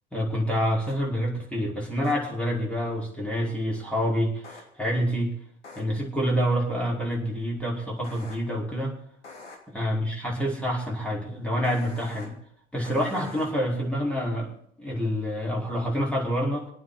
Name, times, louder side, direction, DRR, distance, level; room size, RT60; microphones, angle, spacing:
voice 1, 0.1-5.3 5.8-9.0 9.7-12.4 12.7-16.7, equal, 5° left, -3 dB, 5.2 m, -27 dB
sound 1, 0.9-1.0 2.0-2.1 4.4-4.6 5.6-5.8 8.0-8.3 9.2-9.6 11.6-12.3 12.8-13.5, left 3 dB, 80° left, 3.0 m, -44 dB
27.0 x 9.3 x 4.3 m, 0.68 s
figure-of-eight pair, 75°, 35 cm